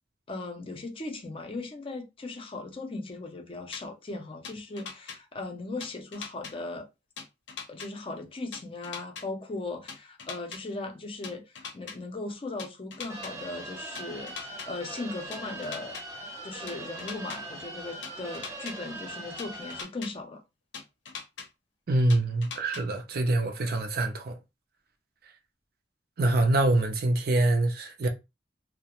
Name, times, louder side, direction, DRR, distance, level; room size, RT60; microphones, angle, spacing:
voice 1, 0.3-6.9 7.7-16.0 16.4-20.4, left 2 dB, 30° left, 0.5 m, -38 dB
sound 1, 3.7-3.8 4.4-5.2 5.8-6.5 7.2-7.9 8.5-9.2 9.9-10.6 11.2-12.0 12.6-13.3 14.0-14.7 15.3-16.0 16.7-17.4 18.0-18.7 19.4-20.1 20.7-21.5 22.1-22.8, left 6 dB, 90° left, 0.6 m, -40 dB
sound 2, 13.1-19.8, right 2 dB, 15° right, 0.6 m, -41 dB
voice 2, 21.9-24.4 26.2-28.1, right 2 dB, 60° right, 0.5 m, -25 dB
2.3 x 2.0 x 2.9 m
head